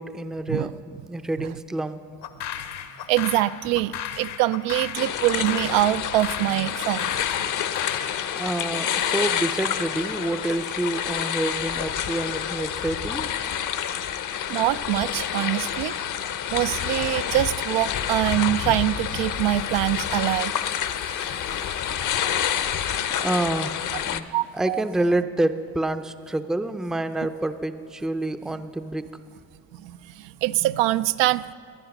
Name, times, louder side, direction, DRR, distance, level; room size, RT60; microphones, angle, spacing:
voice 1, 0.0-2.0 8.3-13.3 22.8-22.9 23.2-24.3 24.5-29.1, right 1 dB, ahead, 10 dB, 0.4 m, -28 dB
sound 1, 2.2-8.1, left 9 dB, 65° left, 1.0 m, -35 dB
voice 2, 3.1-7.1 7.4-7.5 14.5-15.9 16.5-20.5 24.3-24.8 29.8-29.9 30.4-31.5, right 16 dB, 85° right, 14 dB, 0.5 m, -24 dB
sound 2, 4.9-24.2, left 9 dB, 45° left, 0.7 m, -28 dB
19.0 x 11.0 x 5.9 m, 2.3 s
cardioid pair, 110°, 43 cm